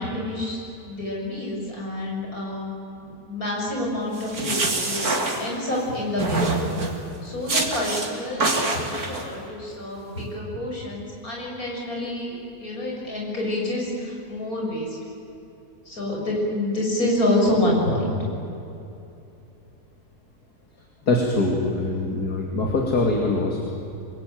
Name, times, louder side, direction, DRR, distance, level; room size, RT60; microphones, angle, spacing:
voice 1, 0.0-2.7 3.0-5.1 5.4-6.5 7.2-15.0 15.9-18.2, left 1 dB, 65° left, -2 dB, 7.2 m, -27 dB
sound 1, 4.1-5.8 6.2-7.0 7.5-8.1 8.4-9.2, right 2 dB, 70° right, 3.3 m, -25 dB
voice 2, 21.0-23.7, left 2 dB, 80° left, 0 dB, 3.0 m, -23 dB
27.5 x 21.5 x 9.3 m, 2.8 s
omnidirectional pair, 1.7 m